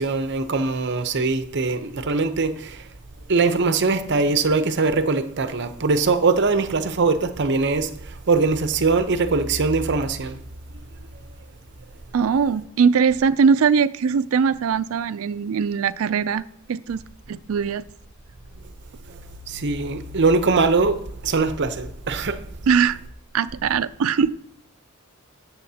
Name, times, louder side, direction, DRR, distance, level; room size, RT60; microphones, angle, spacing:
voice 1, 0.0-2.9 3.3-10.4 19.1-19.2 19.5-22.5, right 4 dB, 55° right, 0.7 m, -22 dB
voice 2, 12.1-16.4 16.7-17.9 22.7-23.0 23.3-24.3, right 6 dB, 75° right, 0.4 m, -21 dB
13.0 x 8.4 x 2.8 m
head